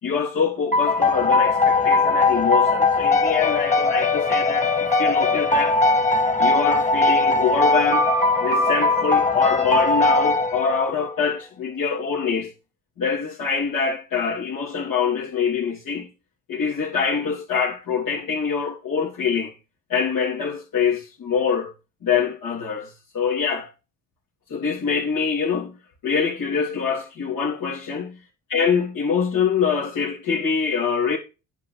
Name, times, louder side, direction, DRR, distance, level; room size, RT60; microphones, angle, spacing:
voice 1, 0.0-5.8 6.4-8.1 8.4-12.5 13.0-16.1 16.5-19.5 19.9-21.7 22.0-23.7 24.5-25.8 26.0-28.1 28.5-31.2, left 6 dB, 60° left, 3.2 m, -24 dB
sound 1, 0.7-11.1, left 3 dB, 20° left, 2.1 m, -20 dB
9.2 x 6.0 x 4.9 m
cardioid pair, 85°, 37 cm